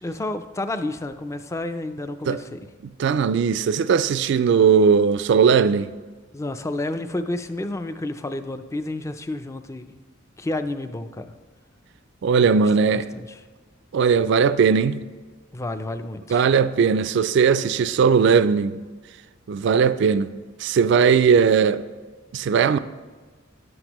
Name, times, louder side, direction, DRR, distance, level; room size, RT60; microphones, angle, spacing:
voice 1, 0.0-2.7 6.3-10.0 10.4-11.3 12.6-13.3 15.5-16.4, left 2 dB, 15° left, 0.4 m, -30 dB
voice 2, 3.0-5.9 12.2-13.0 13.9-15.0 16.3-18.8 19.5-20.3 20.6-21.8 22.3-22.8, right 6 dB, 60° right, 0.3 m, -18 dB
10.5 x 7.9 x 3.0 m
head